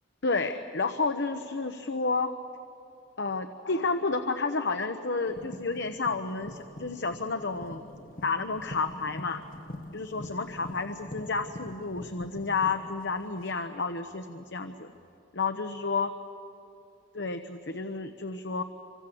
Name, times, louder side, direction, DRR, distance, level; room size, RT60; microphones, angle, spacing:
voice 1, 0.2-2.3 3.2-7.9 8.2-9.4 9.9-14.9 15.3-16.1 17.1-18.6, left 4 dB, 70° left, 7 dB, 1.0 m, -31 dB
sound 1, 5.3-14.1 15.0-15.1, left 1 dB, 50° left, 1.5 m, -44 dB
27.0 x 25.5 x 7.9 m, 2.8 s
head